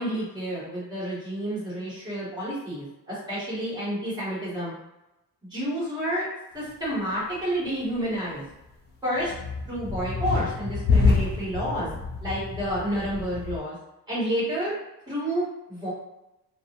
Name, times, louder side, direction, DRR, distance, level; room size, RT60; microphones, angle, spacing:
voice 1, 0.0-4.7 5.5-6.2 6.5-8.4 9.0-9.3 9.7-11.9 12.2-13.7 14.1-14.7 15.1-15.9, equal, 10° right, -10 dB, 1.4 m, -29 dB
sound 1, 9.2-13.6, left 4 dB, 30° left, 0.3 m, -27 dB
2.6 x 2.1 x 2.8 m, 0.93 s
cardioid pair, 165°, 37 cm